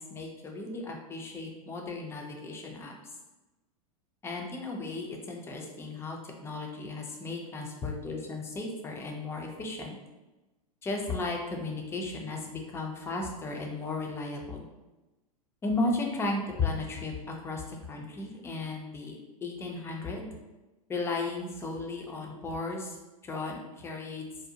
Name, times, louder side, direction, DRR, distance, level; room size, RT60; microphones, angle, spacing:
voice 1, 0.0-2.9 4.2-10.0 10.8-14.7 15.6-17.6 17.9-20.3 20.9-23.0 23.2-24.3, left 3 dB, 15° left, 1 dB, 0.4 m, -35 dB
2.6 x 2.0 x 2.7 m, 1.1 s
hypercardioid pair, 100°, 20 cm